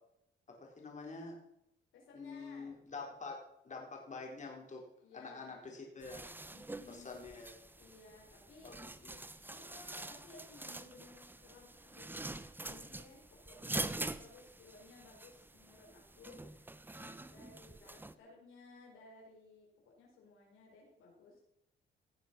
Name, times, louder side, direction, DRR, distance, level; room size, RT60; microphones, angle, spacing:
voice 1, 0.5-1.4 2.1-4.8 5.1-6.2 6.9-7.5 8.6-8.7 9.0-9.2, left 4 dB, 40° left, 0 dB, 4.0 m, -46 dB
voice 2, 1.9-2.7 5.0-5.5 6.5-7.1 7.8-8.8 9.5-21.4, left 3 dB, 85° left, -1 dB, 4.9 m, -58 dB
sound 1, 6.0-18.1, right 2 dB, 10° right, 0.8 m, -45 dB
17.0 x 7.4 x 6.1 m, 0.78 s
cardioid pair, 90°, 20 cm